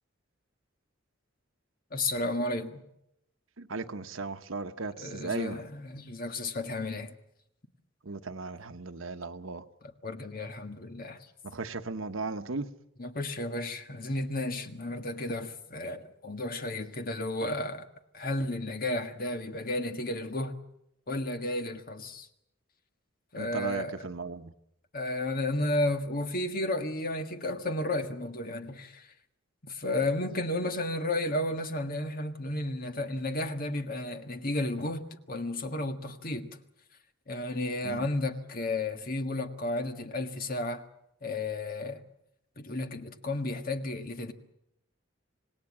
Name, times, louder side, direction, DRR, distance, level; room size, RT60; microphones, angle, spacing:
voice 1, 1.9-2.8 5.0-7.1 10.0-11.2 13.0-17.9 18.1-20.6 21.1-22.3 23.3-24.1 24.9-29.1 29.6-36.5 37.3-40.8 41.2-42.0 42.6-44.3, left 2 dB, 45° left, 1.7 m, -33 dB
voice 2, 3.6-5.6 8.0-9.6 11.4-12.7 23.4-24.5 37.8-38.1, right 3 dB, 90° right, 1.1 m, -36 dB
26.5 x 19.0 x 7.4 m
head